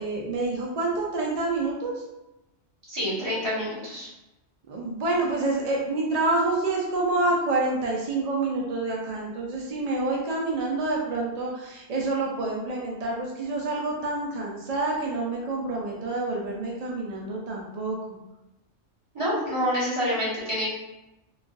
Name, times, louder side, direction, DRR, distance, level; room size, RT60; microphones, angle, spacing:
voice 1, 0.0-2.0 4.7-18.2, right 2 dB, 70° right, -2 dB, 0.3 m, -27 dB
voice 2, 2.9-4.1 19.1-20.7, equal, 25° right, -11 dB, 1.6 m, -27 dB
3.8 x 2.4 x 2.5 m, 0.98 s
omnidirectional pair, 1.3 m